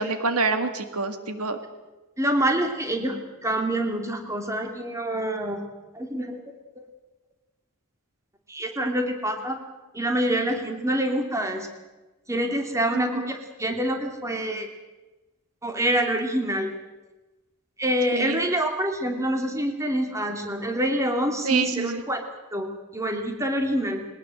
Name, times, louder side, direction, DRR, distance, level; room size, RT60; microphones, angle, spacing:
voice 1, 0.0-1.6 12.9-13.3 18.1-18.4 21.4-22.0, right 4 dB, 85° right, 9 dB, 2.0 m, -27 dB
voice 2, 2.2-3.2 3.4-5.6 5.9-6.4 6.8-6.9 8.5-9.6 9.9-11.7 12.3-14.7 15.6-16.7 17.8-22.2 22.5-24.1, right 1 dB, 15° right, 4 dB, 2.9 m, -26 dB
21.5 x 19.5 x 7.8 m, 1.1 s
head